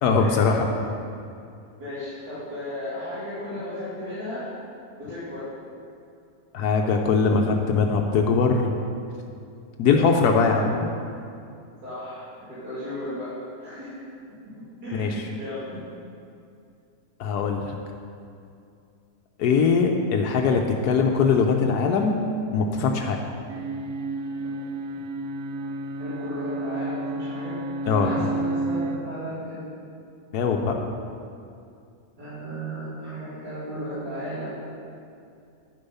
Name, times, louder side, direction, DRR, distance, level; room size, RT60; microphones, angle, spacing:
voice 1, 0.0-0.7 6.5-8.8 9.8-10.9 14.9-15.3 17.2-17.7 19.4-22.2 22.5-23.2 27.9-28.1 30.3-30.7, left 5 dB, 80° left, 2 dB, 1.2 m, -21 dB
voice 2, 1.8-4.4 5.0-5.5 9.8-10.1 11.8-12.3 12.6-13.3 13.6-13.9 14.8-15.6 26.0-27.5 27.9-29.6 32.2-34.5, equal, 90° right, -13 dB, 3.3 m, -34 dB
sound 1, 23.5-29.0, right 2 dB, 65° right, 0.8 m, -31 dB
10.0 x 6.8 x 5.5 m, 2.5 s
omnidirectional pair, 1.6 m